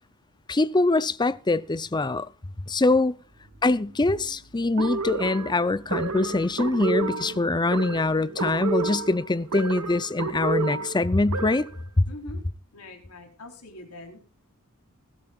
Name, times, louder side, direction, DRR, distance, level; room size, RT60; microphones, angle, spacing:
voice 1, 0.5-2.3 2.7-3.2 3.6-11.7, left 2 dB, 20° left, 0.6 m, -24 dB
sound 1, 3.2-11.5, equal, 65° right, 2.8 m, -48 dB
sound 2, 4.8-11.8, right 4 dB, 80° right, 1.4 m, -30 dB
voice 2, 12.1-12.4 12.7-14.2, left 1 dB, 80° left, 4.1 m, -44 dB
20.5 x 12.5 x 2.5 m
head